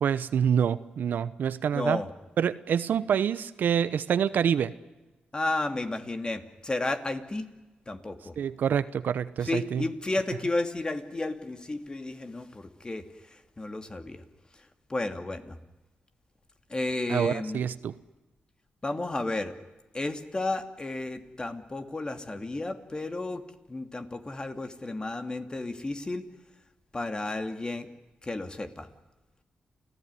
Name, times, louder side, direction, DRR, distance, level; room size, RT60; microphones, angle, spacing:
voice 1, 0.0-2.0 2.4-4.7 8.4-9.8 17.1-17.9, right 8 dB, 75° right, 14 dB, 1.0 m, -26 dB
voice 2, 1.7-2.1 5.3-7.5 7.9-8.3 9.4-13.0 13.3-14.2 14.9-15.6 16.7-17.6 18.8-19.5 19.9-23.4 23.7-26.2 26.9-27.9 28.2-28.9, left 2 dB, 25° left, 7 dB, 2.6 m, -32 dB
29.0 x 16.5 x 9.8 m, 1.1 s
cardioid pair, 70°, 3 cm